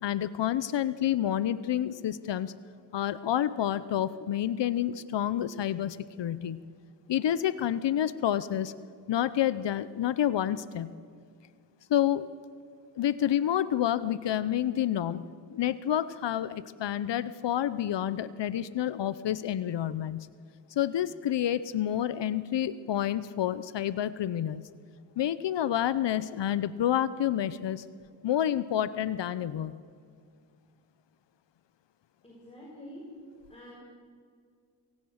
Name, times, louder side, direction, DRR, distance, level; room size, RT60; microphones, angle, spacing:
voice 1, 0.0-2.5 2.9-6.7 7.1-8.7 9.1-10.9 11.9-12.3 13.0-20.3 20.8-24.7 25.2-27.8 28.2-29.7, left 11 dB, 75° left, 16 dB, 0.7 m, -29 dB
voice 2, 32.2-33.1 33.5-33.8, equal, 15° left, -4 dB, 5.4 m, -47 dB
26.5 x 17.5 x 6.4 m, 2.2 s
cardioid pair, 70°, 43 cm